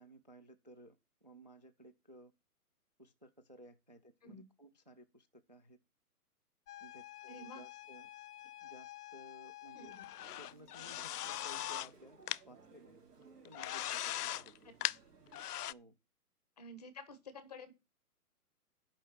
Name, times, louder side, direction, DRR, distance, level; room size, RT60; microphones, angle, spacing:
voice 1, 0.0-2.3 3.0-5.8 6.8-8.1 8.6-10.0 10.4-13.0 13.4-14.5 15.7-15.9, right 1 dB, 30° right, 0.4 m, -57 dB
sound 1, 6.7-11.9 12.3-12.4 13.5-15.0 15.3-15.7, left 12 dB, 80° left, 0.6 m, -42 dB
voice 2, 7.3-7.6 9.7-10.1 16.6-17.7, left 3 dB, 25° left, 1.1 m, -51 dB
Human voice, 10.2-15.5, right 5 dB, 90° right, 3.6 m, -61 dB
11.0 x 5.4 x 5.6 m
hypercardioid pair, 175°, 46 cm